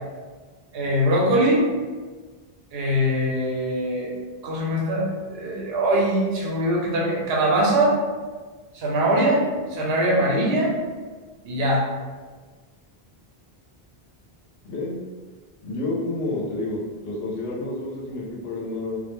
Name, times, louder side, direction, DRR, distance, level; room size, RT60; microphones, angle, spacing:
voice 1, 0.7-1.7 2.7-4.1 4.4-8.0 8.7-10.8 11.4-11.8, right 1 dB, 80° right, -3 dB, 0.9 m, -22 dB
voice 2, 14.6-15.0 15.6-19.0, left 2 dB, 80° left, -3 dB, 0.8 m, -29 dB
2.2 x 2.1 x 3.0 m, 1.4 s
omnidirectional pair, 1.0 m